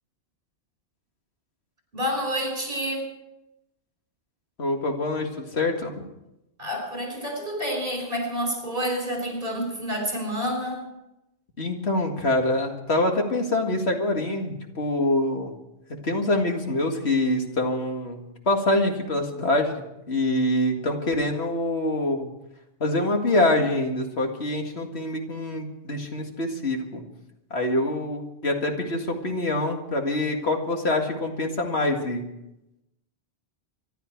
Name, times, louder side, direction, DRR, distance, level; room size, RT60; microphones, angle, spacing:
voice 1, 1.9-3.1 6.6-10.8, equal, 55° right, 2 dB, 5.7 m, -28 dB
voice 2, 4.6-6.0 11.6-15.5 16.0-22.3 22.8-27.0 27.5-32.2, left 1 dB, 70° left, 2 dB, 2.3 m, -25 dB
25.0 x 11.5 x 4.6 m, 0.90 s
omnidirectional pair, 1.1 m